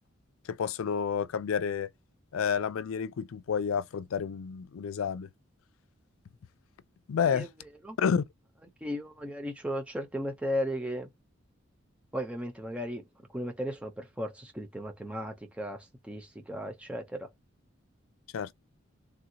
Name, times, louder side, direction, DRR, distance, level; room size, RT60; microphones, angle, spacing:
voice 1, 0.5-1.9 2.3-5.3 7.1-7.5 8.0-8.2 18.3-18.5, left 7 dB, 85° left, 0.4 m, -30 dB
voice 2, 8.8-11.1 12.1-13.1 13.3-17.3, equal, 5° right, 0.6 m, -35 dB
3.6 x 2.3 x 2.8 m
head